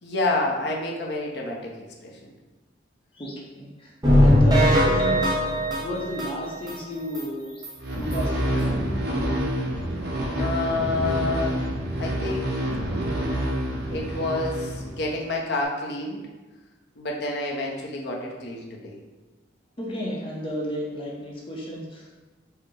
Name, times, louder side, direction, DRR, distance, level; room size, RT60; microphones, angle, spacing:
voice 1, 0.0-1.7 2.0-2.1 10.3-11.6 12.0-12.6 13.9-16.2 17.0-19.0, left 2 dB, 65° left, -1 dB, 0.8 m, -28 dB
voice 2, 3.1-3.9 4.2-5.4 5.8-7.7 8.0-8.9 19.8-22.1, equal, 30° left, -3 dB, 0.8 m, -33 dB
sound 1, 4.0-6.7 7.1-7.2 7.6-7.7 8.1-8.2, equal, 20° right, 1.0 m, -20 dB
sound 2, 7.8-15.2, right 1 dB, 60° right, 0.9 m, -27 dB
4.8 x 2.2 x 4.7 m, 1.2 s
head